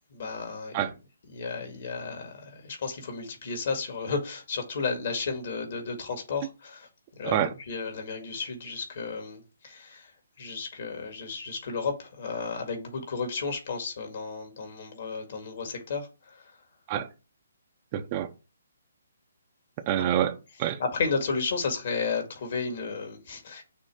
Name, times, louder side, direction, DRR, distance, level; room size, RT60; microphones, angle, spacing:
voice 1, 0.1-0.8 1.3-6.9 7.1-10.1 10.4-16.5 20.0-20.2 20.8-23.6, left 4 dB, 55° left, 2.1 m, -33 dB
voice 2, 17.9-18.3 19.9-20.8, right 11 dB, 30° right, 0.7 m, -27 dB
6.6 x 3.0 x 4.9 m
figure-of-eight pair, 145°, 0 cm